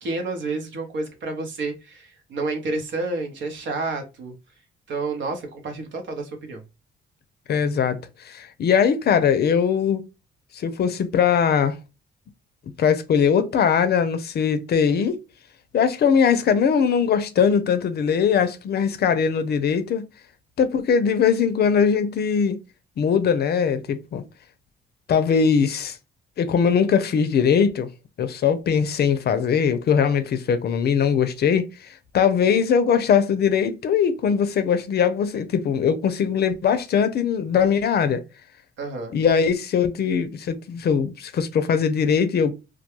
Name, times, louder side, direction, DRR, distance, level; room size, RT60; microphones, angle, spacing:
voice 1, 0.0-4.3 4.9-6.6 38.8-39.2, right 3 dB, 70° right, 0.9 m, -30 dB
voice 2, 7.5-8.0 8.2-10.0 10.5-11.8 12.8-15.2 15.7-20.1 20.6-22.6 23.0-24.2 25.1-26.0 26.4-27.9 28.2-38.2 39.1-42.5, left 7 dB, 55° left, 0.5 m, -21 dB
2.3 x 2.2 x 2.9 m
cardioid pair, 90°, 20 cm